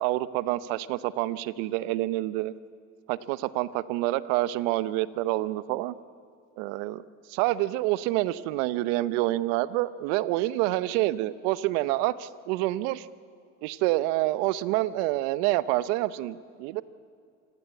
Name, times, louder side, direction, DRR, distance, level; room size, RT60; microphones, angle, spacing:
voice 1, 0.0-2.5 3.1-5.9 6.6-7.0 7.3-13.1 13.6-16.8, right 16 dB, 75° right, 16 dB, 0.9 m, -27 dB
27.0 x 16.5 x 8.5 m, 2.4 s
supercardioid pair, 85°, 40 cm